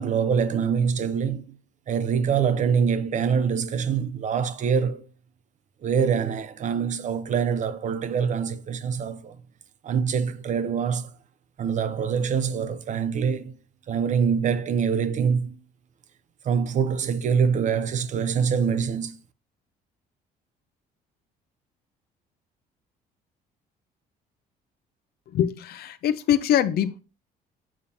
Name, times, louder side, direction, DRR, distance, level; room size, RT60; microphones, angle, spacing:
voice 1, 0.0-1.4 1.9-5.0 5.8-9.4 9.8-11.1 11.6-13.5 13.9-15.6 16.4-19.1, right 6 dB, 45° right, 0.7 m, -24 dB
voice 2, 25.3-27.0, left 10 dB, 65° left, 0.6 m, -23 dB
7.3 x 6.9 x 2.7 m
cardioid pair, 110°, 17 cm